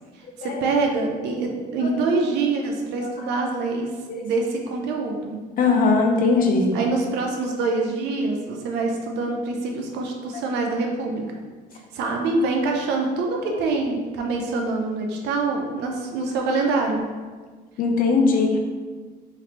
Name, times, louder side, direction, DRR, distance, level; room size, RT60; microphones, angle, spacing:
voice 1, 0.1-3.9 4.2-5.4 6.7-11.4 11.9-17.0, right 3 dB, 85° right, 1 dB, 0.5 m, -25 dB
voice 2, 5.6-6.8 17.8-18.6, left 4 dB, 55° left, 2 dB, 0.6 m, -19 dB
3.1 x 2.5 x 4.3 m, 1.4 s
cardioid pair, 110°, 17 cm